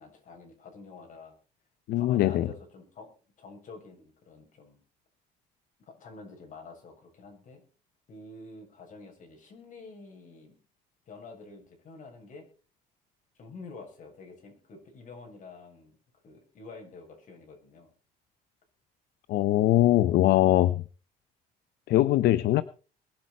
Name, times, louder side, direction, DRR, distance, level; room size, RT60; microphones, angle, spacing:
voice 1, 0.0-1.4 1.9-3.1 3.4-4.8 5.9-7.6 8.1-10.6 11.1-12.4 13.4-16.0 16.2-17.9, left 3 dB, 50° left, 7.5 m, -48 dB
voice 2, 1.9-2.5 19.3-20.8 21.9-22.6, left 14 dB, 70° left, 0.7 m, -22 dB
22.0 x 8.8 x 4.4 m
cardioid pair, 110°, 17 cm